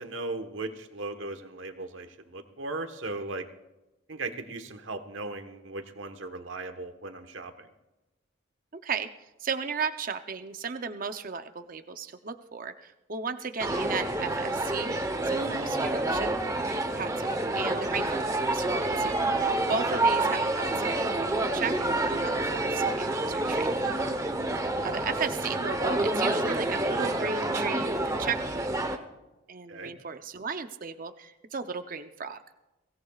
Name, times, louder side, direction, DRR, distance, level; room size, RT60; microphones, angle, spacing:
voice 1, 0.0-3.5 4.1-7.7 29.7-29.9, right 2 dB, 75° right, 7 dB, 1.3 m, -37 dB
voice 2, 8.8-14.9 15.3-16.3 16.9-18.2 18.5-19.2 19.7-23.8 24.8-28.8 29.5-32.4, right 5 dB, 45° right, 8 dB, 0.6 m, -35 dB
sound 1, 13.6-29.0, right 2 dB, 15° right, 0.9 m, -28 dB
23.0 x 17.5 x 2.4 m, 1.0 s
head